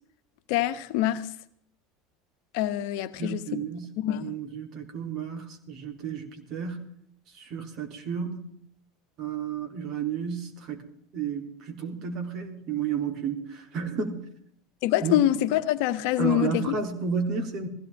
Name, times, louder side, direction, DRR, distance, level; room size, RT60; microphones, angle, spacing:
voice 1, 0.5-1.3 2.5-3.6 4.0-4.3 14.8-16.8, left 13 dB, 65° left, 1.1 m, -25 dB
voice 2, 3.2-3.9 4.2-6.8 7.4-8.5 9.2-10.8 11.1-14.2 15.0-15.3 16.2-17.7, right 6 dB, 50° right, 3.2 m, -32 dB
20.0 x 16.0 x 3.6 m
hypercardioid pair, 80°, 0 cm